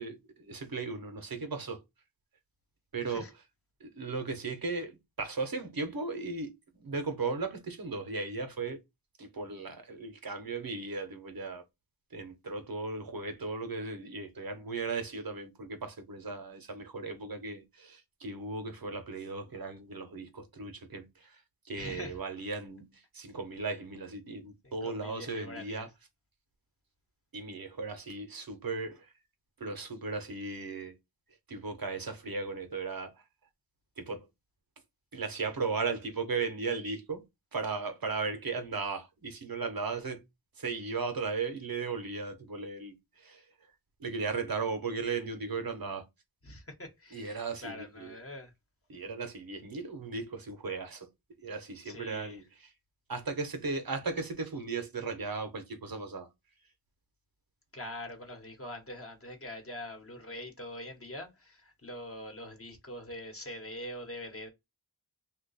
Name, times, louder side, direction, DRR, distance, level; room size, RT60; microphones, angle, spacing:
voice 1, 0.0-1.8 2.9-3.3 3.8-8.8 9.2-11.6 12.1-25.9 27.3-29.1 29.6-31.0 31.5-33.2 34.0-34.3 35.1-37.2 37.5-40.2 40.6-43.5 44.0-46.1 47.1-48.2 48.9-51.1 51.4-52.7 53.1-56.3, right 4 dB, 60° right, 0.8 m, -36 dB
voice 2, 21.8-22.2 24.6-25.9 46.4-48.5 51.8-52.4 57.7-64.5, left 1 dB, 35° left, 1.1 m, -44 dB
2.9 x 2.3 x 4.0 m
wide cardioid pair, 75°, 40 cm